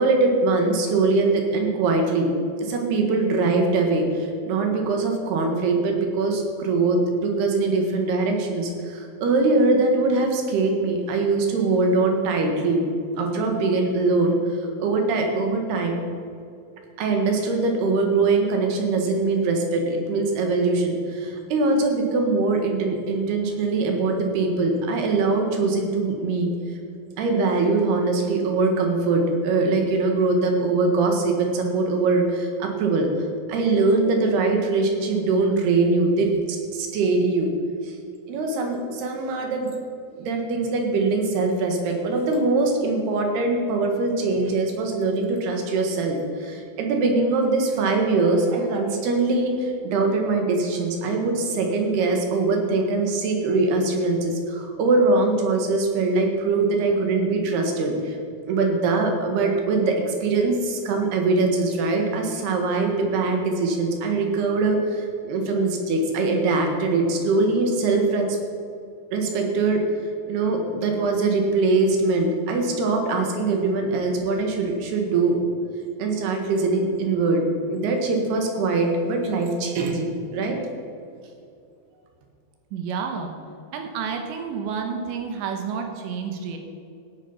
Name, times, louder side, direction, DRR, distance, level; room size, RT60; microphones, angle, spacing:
voice 1, 0.0-2.3 2.6-12.9 13.2-16.0 17.0-26.5 27.2-37.5 37.8-38.0 38.3-39.7 40.2-58.2 58.4-68.3 69.1-69.8 70.3-75.4 76.0-80.6, right 3 dB, 70° right, 3 dB, 3.6 m, -22 dB
voice 2, 82.7-83.3 83.7-86.6, right 6 dB, 85° right, 4 dB, 3.5 m, -30 dB
16.0 x 11.0 x 5.7 m, 2.5 s
omnidirectional pair, 5.0 m